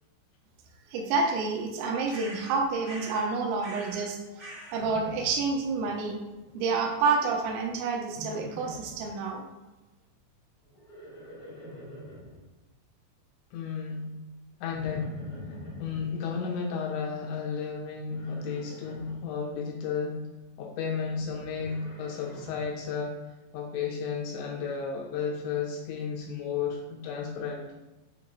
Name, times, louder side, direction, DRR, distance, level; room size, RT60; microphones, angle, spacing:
voice 1, 0.9-4.2 4.7-6.2 6.5-9.4, right 4 dB, 90° right, 1 dB, 3.4 m, -28 dB
sound 1, 2.1-3.3 3.6-4.1 4.4-4.9, right 1 dB, 75° right, 0.9 m, -44 dB
Livestock farm animals working animals, 4.7-6.0 6.2-6.8 8.1-9.1 10.6-12.4 14.7-16.1 18.0-19.2 21.0-22.7, left 2 dB, 60° left, 1.0 m, -44 dB
voice 2, 13.5-14.1 14.6-15.1 15.8-20.2 20.6-23.2 23.5-27.7, left 6 dB, 85° left, 1 dB, 2.6 m, -33 dB
8.2 x 2.9 x 5.2 m, 1.0 s
omnidirectional pair, 5.9 m